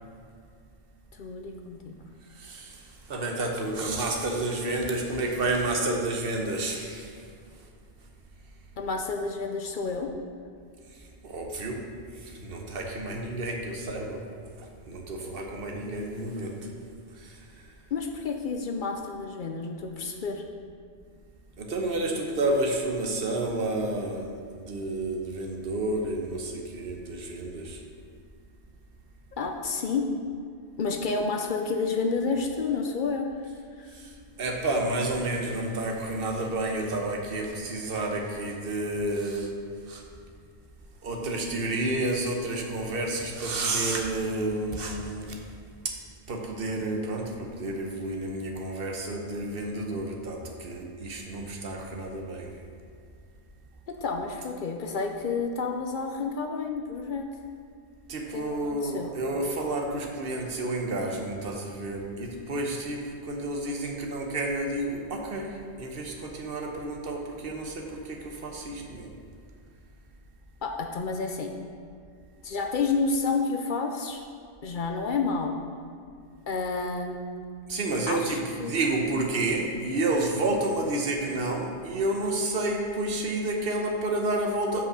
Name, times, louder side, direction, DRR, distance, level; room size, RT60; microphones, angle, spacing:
voice 1, 1.1-1.9 8.8-10.1 17.9-20.4 29.4-30.1 30.8-33.3 33.8-33.9 53.9-57.3 58.3-59.1 70.6-71.6 72.4-74.2 74.6-75.5 76.5-77.4 78.1-78.8, left 4 dB, 55° left, 3 dB, 0.7 m, -30 dB
voice 2, 2.3-7.2 11.2-11.8 12.2-14.2 14.6-16.5 17.2-17.4 21.6-24.3 24.7-27.8 33.9-34.1 34.4-39.5 39.9-40.0 41.0-45.4 46.3-52.5 58.1-65.5 65.8-69.1 77.7-84.9, right 2 dB, 65° right, 1 dB, 1.1 m, -30 dB
5.6 x 5.1 x 6.1 m, 2.3 s
omnidirectional pair, 1.1 m